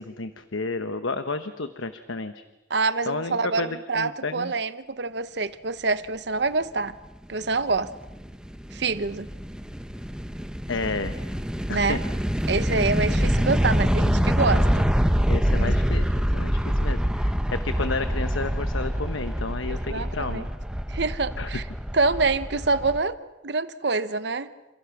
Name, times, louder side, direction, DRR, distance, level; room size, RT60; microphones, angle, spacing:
voice 1, 0.0-2.4 3.1-4.5 10.7-11.2 11.7-12.0 15.3-16.1 16.3-17.4 17.6-20.5 21.4-21.5, left 3 dB, 80° left, 10 dB, 1.1 m, -31 dB
voice 2, 2.7-6.9 7.3-7.9 8.7-9.3 11.7-12.0 12.5-14.9 19.7-20.4 20.9-21.6 21.9-23.2 23.4-24.5, right 3 dB, 55° right, 13 dB, 0.9 m, -26 dB
sound 1, 7.5-23.0, equal, 5° right, 0.8 m, -25 dB
28.0 x 28.0 x 6.0 m, 1.0 s
head